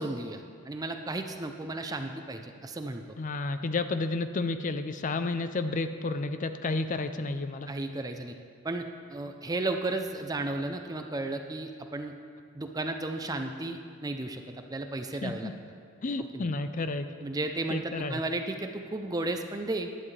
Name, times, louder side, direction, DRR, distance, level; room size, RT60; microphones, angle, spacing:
voice 1, 0.0-3.0 7.7-8.3 8.6-12.1 12.5-15.5 16.3-16.5 17.2-19.9, right 2 dB, 15° right, 5 dB, 0.5 m, -34 dB
voice 2, 3.2-7.7 15.2-15.5 16.0-17.1 17.7-18.2, left 3 dB, 35° left, 9 dB, 0.4 m, -31 dB
18.0 x 11.0 x 3.3 m, 2.2 s
head